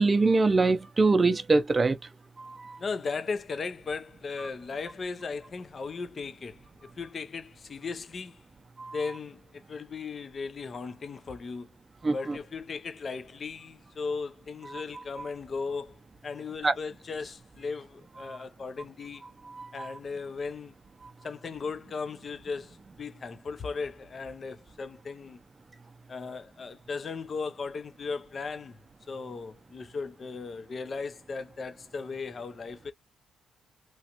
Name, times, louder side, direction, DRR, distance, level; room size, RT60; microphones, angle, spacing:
voice 1, 0.0-2.0 8.8-9.0 12.0-12.4 16.6-16.7 19.6-19.9, right 3 dB, 25° right, 0.6 m, -23 dB
voice 2, 2.8-8.4 8.9-11.7 12.1-19.2 19.7-20.7 21.2-25.4 26.1-28.8 29.1-32.9, left 4 dB, 40° left, 0.5 m, -37 dB
3.0 x 2.4 x 2.9 m
cardioid pair, 90°, 0 cm